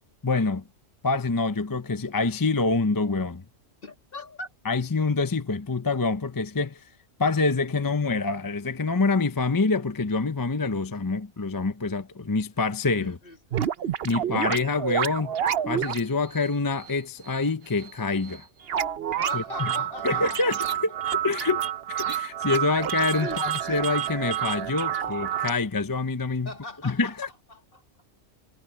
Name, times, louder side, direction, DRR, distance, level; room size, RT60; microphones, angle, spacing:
voice 1, 0.2-0.6 1.0-3.4 4.7-6.8 7.2-13.2 14.0-15.3 15.6-18.5 19.3-19.7 20.0-20.5 21.2-21.6 21.9-26.5 26.8-27.3, left 3 dB, 20° left, 0.6 m, -26 dB
voice 2, 3.8-4.5 13.0-13.7 14.1-14.4 19.1-20.8 23.2-23.4 26.4-27.2 27.5-27.8, left 2 dB, 45° left, 2.5 m, -40 dB
sound 1, 13.5-16.0 16.3-16.5 16.8-16.9 17.3-17.4 17.8-17.9 18.2-18.4 18.6-25.5, right 9 dB, 55° right, 0.9 m, -29 dB
omnidirectional pair, 1.3 m